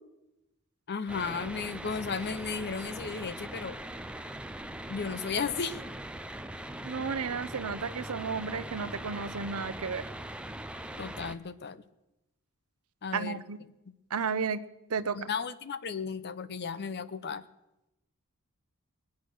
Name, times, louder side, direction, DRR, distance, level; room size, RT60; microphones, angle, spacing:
voice 1, 0.9-3.8 4.9-5.8 11.0-11.8 13.0-13.4 15.2-17.4, left 5 dB, 50° left, 13 dB, 0.7 m, -34 dB
sound 1, 1.1-11.4, right 1 dB, 5° right, 0.5 m, -41 dB
voice 2, 6.8-10.0 13.1-13.6 14.1-14.6 14.9-15.2, right 5 dB, 75° right, 14 dB, 0.7 m, -33 dB
21.0 x 8.4 x 6.3 m, 0.93 s
head